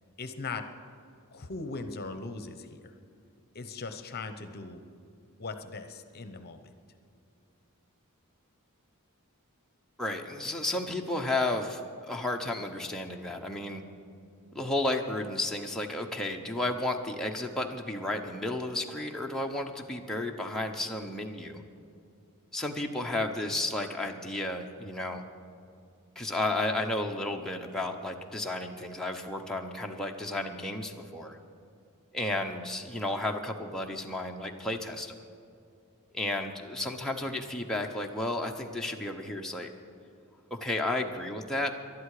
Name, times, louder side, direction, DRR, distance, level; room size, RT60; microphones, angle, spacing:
voice 1, 0.2-0.6 1.3-2.9 3.5-4.8 5.4-6.7, left 3 dB, 45° left, 9 dB, 0.9 m, -39 dB
voice 2, 10.0-11.8 12.1-13.8 14.5-21.6 22.5-25.2 26.2-31.4 32.1-35.1 36.1-39.7 40.5-41.7, left 2 dB, ahead, 0 dB, 0.9 m, -32 dB
20.0 x 12.0 x 4.9 m, 2.5 s
head